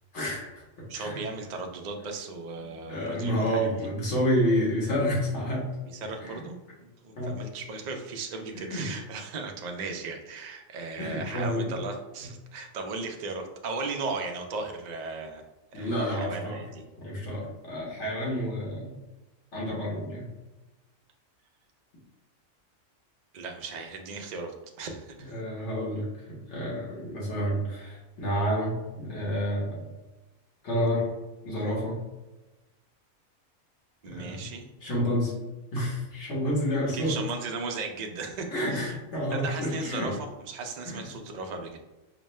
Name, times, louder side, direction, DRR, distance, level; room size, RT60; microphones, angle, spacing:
voice 1, 0.1-1.2 2.9-5.7 6.2-6.4 7.2-7.4 8.5-8.9 11.0-11.7 15.7-16.6 17.0-19.0 19.5-20.3 25.3-29.8 30.6-31.1 31.4-32.0 34.0-34.5 34.8-35.3 35.7-37.2 38.5-40.1 40.8-41.1, equal, 60° left, -4 dB, 1.6 m, -29 dB
voice 2, 0.9-3.7 5.9-6.6 6.8-15.4 15.7-16.8 23.3-25.3 34.0-34.7 36.9-39.0 39.3-41.8, right 3 dB, 80° right, 3 dB, 0.3 m, -36 dB
5.0 x 2.1 x 3.1 m, 1.1 s
omnidirectional pair, 1.4 m